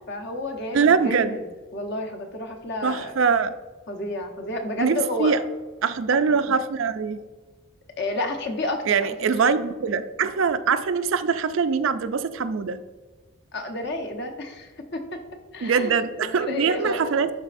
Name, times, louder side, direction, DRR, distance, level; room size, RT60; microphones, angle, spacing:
voice 1, 0.1-1.4 1.7-3.1 3.9-5.4 8.0-9.1 13.5-15.2 15.5-15.9 16.2-17.0, left 1 dB, 50° left, 3 dB, 0.9 m, -30 dB
voice 2, 0.7-1.4 2.8-3.5 4.8-5.4 5.8-7.2 8.9-12.8 15.6-17.3, right 5 dB, 65° right, 11 dB, 0.4 m, -23 dB
12.0 x 4.1 x 2.5 m, 1.3 s
head